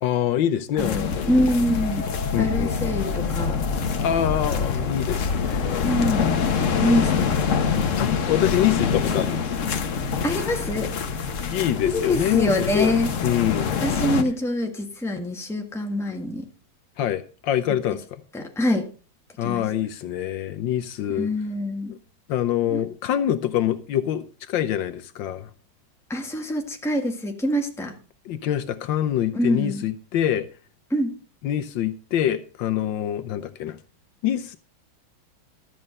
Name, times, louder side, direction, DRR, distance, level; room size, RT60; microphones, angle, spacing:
voice 1, 0.0-1.4 2.3-3.0 4.0-5.9 8.0-9.5 11.5-13.7 17.0-18.2 19.4-21.3 21.9-22.0 22.3-25.5 28.2-30.5 31.4-33.8 34.2-34.6, left 11 dB, 75° left, 1.4 m, -25 dB
sound 1, 0.8-14.2, left 6 dB, 50° left, 1.1 m, -25 dB
voice 2, 0.8-2.0 2.4-3.6 5.8-6.4 6.8-7.4 10.2-10.9 11.8-13.1 13.8-16.5 18.3-18.9 19.4-19.6 21.1-21.9 22.7-22.8 26.1-27.9 29.3-29.8 30.9-31.1, left 1 dB, ahead, 1.3 m, -25 dB
12.5 x 7.6 x 5.3 m
omnidirectional pair, 2.2 m